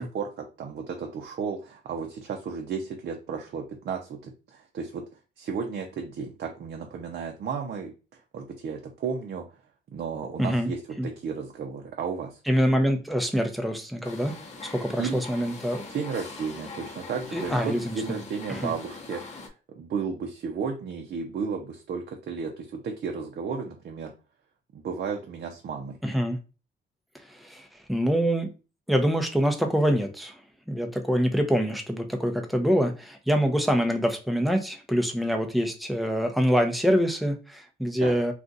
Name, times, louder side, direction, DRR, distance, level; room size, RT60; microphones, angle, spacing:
voice 1, 0.0-5.0 5.4-9.6 9.9-12.4 15.0-15.2 15.9-24.1 24.7-26.0 38.0-38.2, right 5 dB, 55° right, 2 dB, 0.6 m, -33 dB
voice 2, 10.4-10.7 11.0-11.1 12.5-14.3 14.6-15.9 17.3-18.2 18.5-18.7 26.0-26.4 27.1-28.5 28.9-30.4 30.7-38.3, equal, ahead, 4 dB, 0.7 m, -25 dB
sound 1, 14.0-19.5, left 3 dB, 35° left, 0.9 m, -41 dB
2.4 x 2.4 x 3.9 m, 0.33 s
cardioid pair, 90°, 20 cm